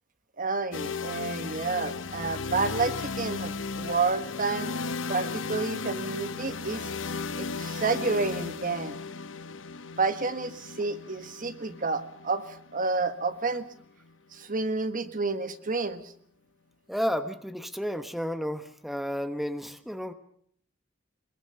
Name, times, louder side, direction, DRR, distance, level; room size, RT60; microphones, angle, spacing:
voice 1, 0.4-4.7 5.1-6.9 7.4-9.0 10.0-12.4 12.7-13.7 14.3-16.0, right 3 dB, 45° right, 10 dB, 1.5 m, -30 dB
sound 1, 0.7-14.6, left 4 dB, 70° left, 0.9 m, -36 dB
voice 2, 16.9-20.1, equal, ahead, 9 dB, 1.0 m, -32 dB
22.5 x 21.5 x 6.9 m, 0.64 s
head